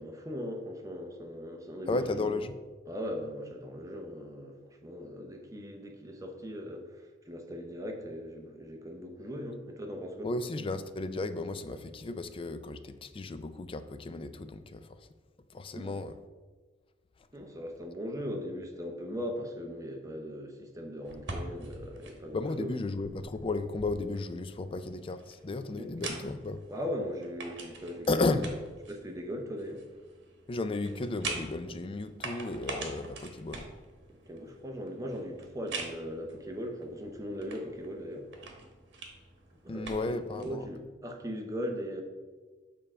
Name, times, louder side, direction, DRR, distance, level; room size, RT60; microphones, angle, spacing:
voice 1, 0.0-2.3 2.9-10.3 15.7-16.0 17.3-22.7 25.7-25.9 26.7-28.2 28.9-29.8 34.3-38.3 39.6-42.0, equal, 20° right, 2 dB, 0.8 m, -39 dB
voice 2, 1.9-2.6 10.2-15.1 15.5-16.1 22.3-26.6 28.1-28.5 30.5-33.7 39.7-40.7, left 2 dB, 30° left, 11 dB, 0.4 m, -34 dB
sound 1, 21.0-40.5, right 3 dB, 65° right, 1.3 m, -45 dB
6.8 x 3.7 x 5.5 m, 1.3 s
head